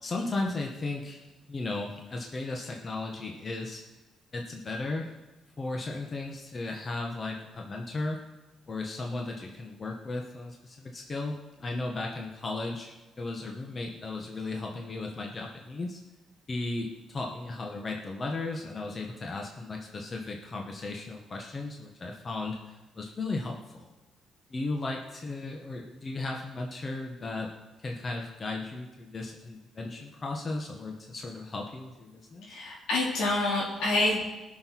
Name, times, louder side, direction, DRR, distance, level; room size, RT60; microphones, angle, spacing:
voice 1, 0.0-3.8 4.3-5.1 5.6-8.2 8.7-16.0 16.5-23.9 24.5-27.5 27.8-32.6, left 2 dB, 35° left, 1 dB, 1.4 m, -35 dB
voice 2, 32.4-34.3, left 2 dB, 85° left, -4 dB, 4.4 m, -27 dB
19.0 x 6.5 x 4.7 m, 1.1 s
cardioid pair, 90°, 0 cm